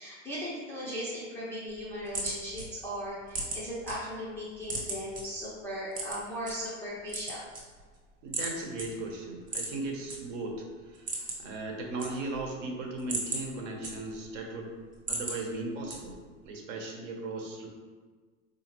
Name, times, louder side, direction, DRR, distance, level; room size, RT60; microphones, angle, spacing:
voice 1, 0.0-7.4, equal, 5° left, -9 dB, 0.3 m, -37 dB
sound 1, 1.7-3.9 4.3-5.2 5.9-6.5 7.0-8.0 8.3-8.5 8.8-8.9 9.4-10.2 10.5-10.6 10.9-11.5 11.8-12.5 12.9-14.3 14.7-15.4 15.9-16.3, right 2 dB, 20° right, 1.0 m, -35 dB
voice 2, 8.2-14.7 15.1-17.7, right 2 dB, 65° right, 1 dB, 0.9 m, -37 dB
3.9 x 2.7 x 2.9 m, 1.4 s
supercardioid pair, 125°, 40 cm